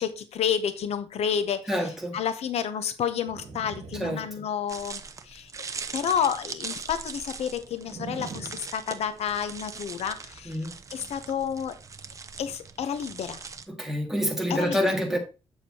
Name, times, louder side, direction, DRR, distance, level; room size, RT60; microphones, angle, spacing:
voice 1, 0.0-1.6 2.1-5.5 5.9-10.6 10.9-11.8 12.4-13.4 14.5-14.8, left 8 dB, 75° left, 0.7 m, -30 dB
voice 2, 1.7-2.2 3.9-4.4 10.5-10.7 13.7-15.2, equal, 5° right, 1.9 m, -27 dB
sound 1, 3.1-5.0 7.8-9.5, right 5 dB, 80° right, 1.4 m, -43 dB
sound 2, 4.7-13.7, right 5 dB, 30° right, 0.6 m, -41 dB
8.0 x 7.1 x 2.8 m
cardioid pair, 120°, 11 cm